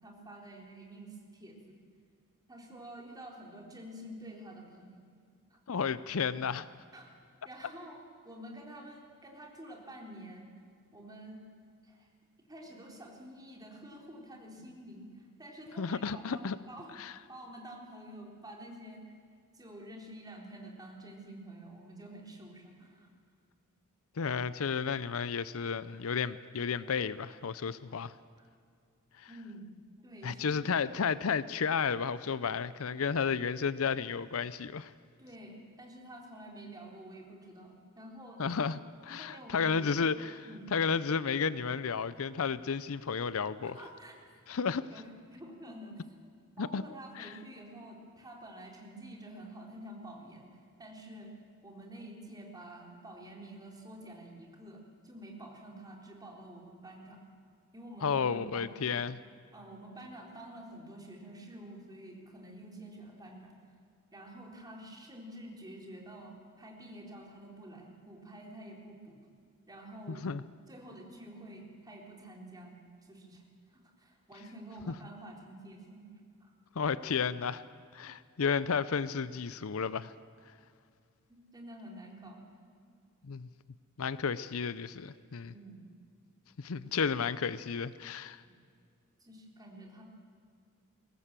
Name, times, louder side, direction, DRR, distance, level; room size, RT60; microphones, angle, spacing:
voice 1, 0.0-1.7 2.5-5.0 5.5-5.6 6.9-7.1 7.4-8.0 8.2-10.5 10.9-11.4 11.8-12.1 12.5-16.9 17.3-19.0 19.5-23.1 28.4-28.5 29.3-29.7 30.0-30.7 35.2-38.7 39.2-40.1 40.5-40.7 43.6-44.1 44.9-46.0 46.6-51.3 51.6-57.2 57.7-58.7 59.5-63.5 64.1-69.2 69.7-70.3 70.7-73.4 73.7-76.1 76.4-76.5 81.3-82.4 85.5-85.9 86.8-86.9 88.4-88.5 89.2-90.0, right 1 dB, 20° right, -1 dB, 3.8 m, -49 dB
voice 2, 5.7-6.7 15.8-16.6 17.0-17.1 24.2-28.1 29.2-29.3 30.2-34.9 38.4-38.8 39.1-43.7 44.5-44.9 46.6-46.8 47.2-47.3 58.0-59.2 70.1-70.4 76.8-77.6 77.9-80.1 83.2-83.5 84.0-85.5 86.6-88.4, left 6 dB, 70° left, 16 dB, 0.6 m, -32 dB
22.5 x 18.5 x 7.5 m, 2.3 s
head